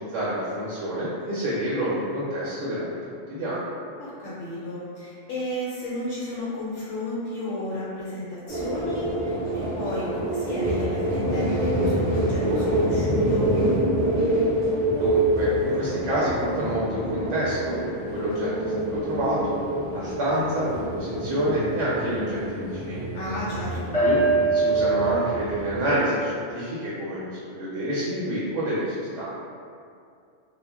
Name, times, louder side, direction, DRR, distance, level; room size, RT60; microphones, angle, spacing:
voice 1, 0.0-2.9 3.3-3.7 14.9-17.8 18.1-19.5 19.9-23.1 24.0-24.2 24.5-29.3, right 1 dB, 70° right, -8 dB, 0.8 m, -28 dB
voice 2, 4.0-13.5 23.1-24.0, left 1 dB, 90° left, -8 dB, 1.0 m, -33 dB
sound 1, 8.5-26.0, right 1 dB, 10° left, 0.8 m, -25 dB
2.3 x 2.0 x 3.3 m, 2.4 s
omnidirectional pair, 1.3 m